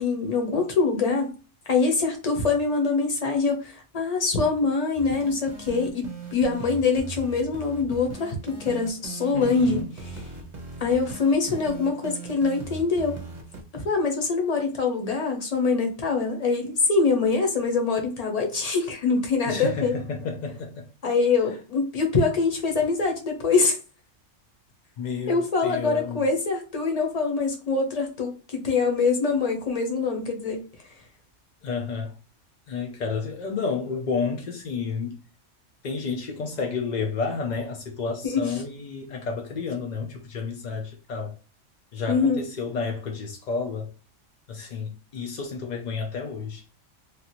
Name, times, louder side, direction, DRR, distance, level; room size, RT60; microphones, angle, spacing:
voice 1, 0.0-1.3 1.7-6.1 6.3-9.8 10.8-13.2 13.7-19.9 21.0-23.8 25.3-30.6 38.2-38.4 42.1-42.4, left 4 dB, 35° left, 0.8 m, -24 dB
sound 1, 5.0-13.6, right 4 dB, 40° right, 1.0 m, -39 dB
voice 2, 9.3-9.9 19.5-20.9 21.5-21.6 25.0-26.2 31.6-32.1 32.7-35.2 35.8-41.4 41.9-43.9 44.5-46.6, left 5 dB, 65° left, 0.4 m, -31 dB
3.2 x 2.4 x 2.9 m
omnidirectional pair, 1.3 m